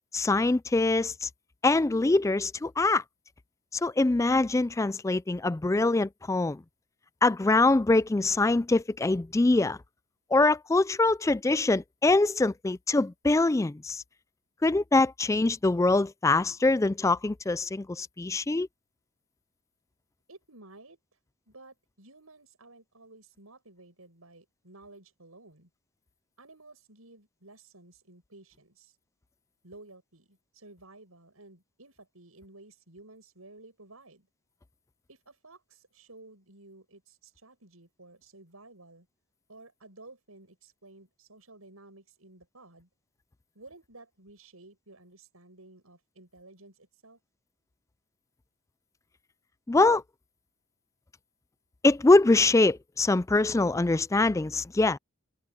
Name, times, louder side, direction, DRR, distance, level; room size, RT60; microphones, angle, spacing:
voice 1, 0.1-1.3 1.6-3.0 3.7-6.6 7.2-9.8 10.3-14.0 14.6-18.7 49.7-50.0 51.8-55.0, left 2 dB, 15° left, 0.3 m, -24 dB
voice 2, 20.3-21.0 21.5-25.7 26.4-29.0 29.6-34.3 35.1-39.1 39.5-42.9 43.5-47.2, right 2 dB, 85° right, 7.8 m, -53 dB
head